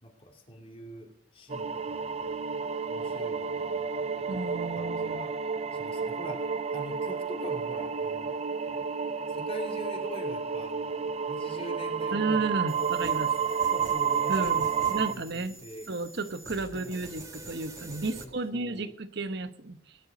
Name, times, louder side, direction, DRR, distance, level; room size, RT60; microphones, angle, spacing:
voice 1, 0.0-2.4 2.9-4.3 4.7-5.3 5.7-8.4 9.3-12.7 13.7-15.9 16.7-17.2 18.1-18.9, equal, 30° left, 1 dB, 2.8 m, -44 dB
sound 1, 1.5-15.1, right 6 dB, 35° right, 0.5 m, -31 dB
voice 2, 4.3-5.3 12.1-13.4 14.3-15.6 15.9-20.0, right 3 dB, 65° right, 11 dB, 1.2 m, -33 dB
sound 2, 12.7-18.2, right 2 dB, 20° right, 2.0 m, -46 dB
17.5 x 11.0 x 5.2 m, 0.68 s
head